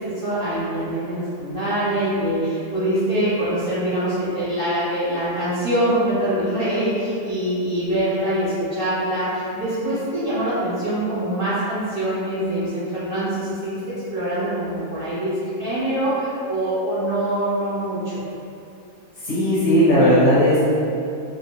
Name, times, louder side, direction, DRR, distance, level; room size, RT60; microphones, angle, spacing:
voice 1, 0.0-18.2, right 1 dB, 50° right, -13 dB, 0.7 m, -24 dB
voice 2, 19.2-20.8, equal, 60° left, -10 dB, 0.9 m, -16 dB
2.5 x 2.3 x 2.8 m, 2.6 s
omnidirectional pair, 1.6 m